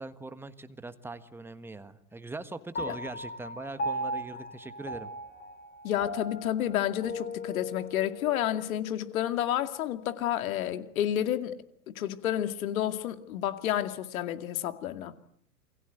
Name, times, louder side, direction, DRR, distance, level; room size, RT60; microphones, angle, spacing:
voice 1, 0.0-5.1, right 2 dB, 5° right, 1.4 m, -41 dB
Piano, 2.8-9.4, left 1 dB, 20° left, 4.0 m, -38 dB
voice 2, 5.8-11.5 11.9-15.2, left 11 dB, 60° left, 2.4 m, -30 dB
28.5 x 22.0 x 8.0 m
figure-of-eight pair, 105°, 47 cm